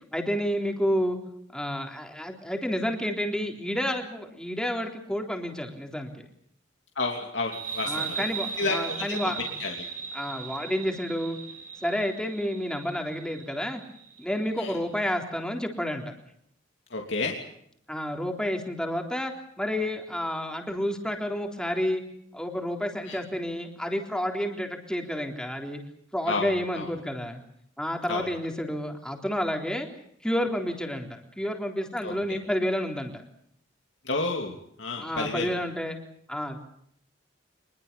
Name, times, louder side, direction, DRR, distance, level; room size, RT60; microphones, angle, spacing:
voice 1, 0.1-1.2 1.5-6.3 7.9-9.5 10.1-11.4 11.8-13.8 14.2-16.1 17.9-22.0 22.3-25.8 26.1-27.4 27.8-29.9 30.2-33.2 35.0-36.0 36.3-36.6, equal, 5° left, 3 dB, 3.8 m, -30 dB
voice 2, 6.9-8.3 8.6-9.9 14.6-14.8 16.9-17.4 23.1-23.2 26.3-26.9 28.1-28.3 32.0-32.4 34.0-35.5, left 3 dB, 65° left, 1 dB, 3.1 m, -31 dB
sound 1, 7.5-14.7, right 6 dB, 45° right, 4.6 m, -37 dB
25.5 x 22.0 x 7.0 m, 0.70 s
head